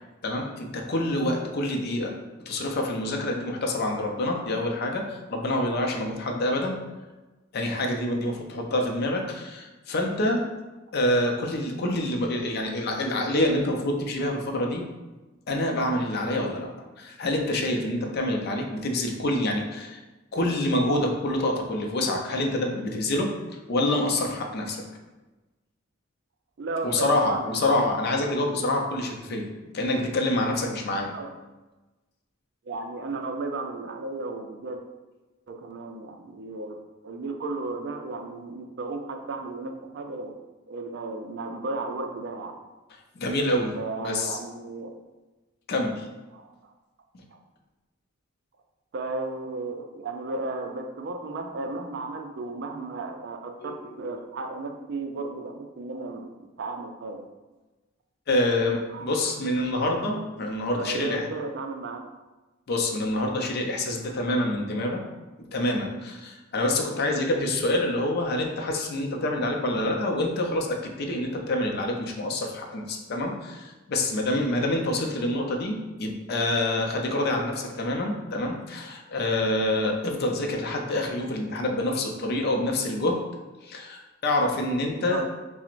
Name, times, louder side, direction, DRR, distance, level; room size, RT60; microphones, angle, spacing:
voice 1, 0.2-2.1 2.5-6.8 7.5-10.4 10.9-14.8 15.5-16.7 17.0-20.0 20.3-23.3 23.7-24.8 26.8-29.5 29.7-31.1 43.2-44.4 45.7-46.1 47.1-47.2 53.6-54.1 58.3-61.3 62.7-65.0 65.4-83.2 83.6-85.3, left 1 dB, 50° left, 1 dB, 0.5 m, -27 dB
voice 2, 26.6-27.9 31.1-31.3 32.6-34.8 35.5-36.8 37.0-40.4 40.7-42.6 43.7-44.9 46.3-46.7 47.3-47.4 48.9-56.3 56.6-57.3 58.9-59.2 60.8-62.0 85.1-85.3, right 3 dB, 60° right, 4 dB, 0.4 m, -34 dB
5.7 x 2.1 x 2.5 m, 1.1 s
head